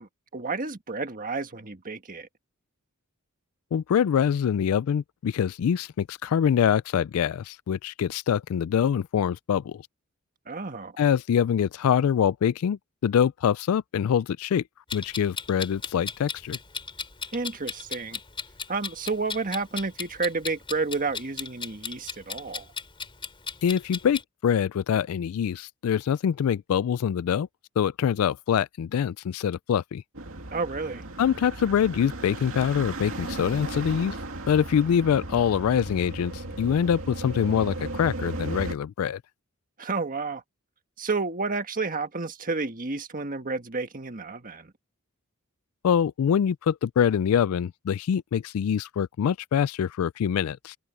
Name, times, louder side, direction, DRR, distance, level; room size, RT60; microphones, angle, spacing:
voice 1, 0.0-2.3 10.5-10.9 17.3-18.2 18.7-22.7 30.5-31.0 39.8-40.4 41.0-44.7, right 3 dB, 40° right, 1.6 m, -31 dB
voice 2, 3.7-9.8 11.0-14.6 14.9-16.6 23.6-27.5 27.8-30.0 31.2-34.2 34.5-39.2 45.8-50.8, left 8 dB, 75° left, 0.3 m, -24 dB
Clock, 14.9-24.2, left 5 dB, 25° left, 3.9 m, -36 dB
sound 1, 30.1-38.7, right 2 dB, 65° right, 2.7 m, -36 dB
head